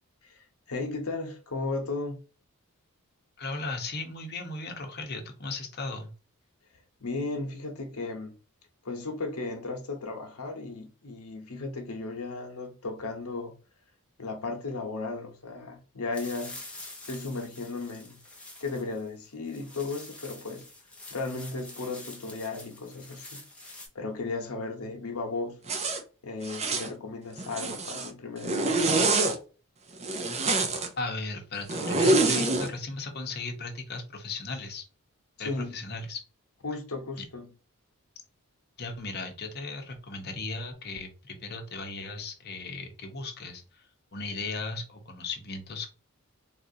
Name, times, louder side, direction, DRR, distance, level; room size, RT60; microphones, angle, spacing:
voice 1, 0.2-2.2 7.0-8.3 8.8-13.5 14.2-16.7 17.1-18.2 18.6-20.7 21.1-25.6 26.2-29.1 35.4-35.8 36.6-37.5, left 3 dB, 80° left, 0.9 m, -35 dB
voice 2, 3.4-6.1 31.0-34.8 35.4-36.2 37.2-37.3 38.8-43.9 44.1-45.9, left 3 dB, 45° left, 0.9 m, -36 dB
sound 1, 16.1-23.9, left 2 dB, 5° left, 0.8 m, -47 dB
Zipper (clothing), 25.7-26.0 26.5-26.9 27.4-28.1 28.4-29.4 30.0-30.9 31.7-32.7, right 2 dB, 30° right, 0.6 m, -26 dB
4.1 x 2.5 x 2.7 m
head